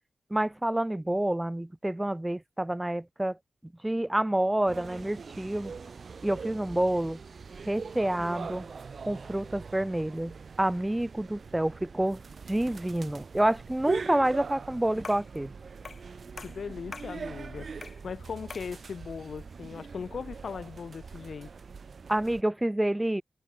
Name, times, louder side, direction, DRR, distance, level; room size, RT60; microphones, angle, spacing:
voice 1, 0.3-3.4 3.8-5.7 6.2-7.2 7.7-8.7 9.1-12.2 12.5-15.5 22.1-23.2, right 1 dB, 10° right, 0.3 m, -28 dB
sound 1, 4.7-22.4, right 5 dB, 55° right, 0.9 m, -42 dB
sound 2, 15.0-15.4 15.9-16.1 16.4-17.2 17.8-18.1 18.5-18.8, left 4 dB, 45° left, 4.8 m, -44 dB
voice 2, 16.4-17.7 18.0-21.5, left 6 dB, 70° left, 0.9 m, -39 dB
wide cardioid pair, 130°, 0 cm